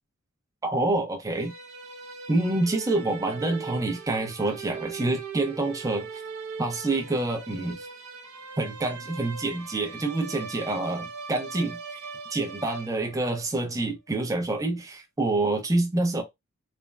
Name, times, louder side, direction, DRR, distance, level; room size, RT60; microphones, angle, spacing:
voice 1, 0.6-1.5 2.3-6.2 6.6-7.9 8.6-12.0 12.3-16.2, right 2 dB, 15° right, 0.4 m, -27 dB
sound 1, 1.3-13.4, right 5 dB, 70° right, 0.6 m, -40 dB
3.2 x 2.0 x 2.2 m
head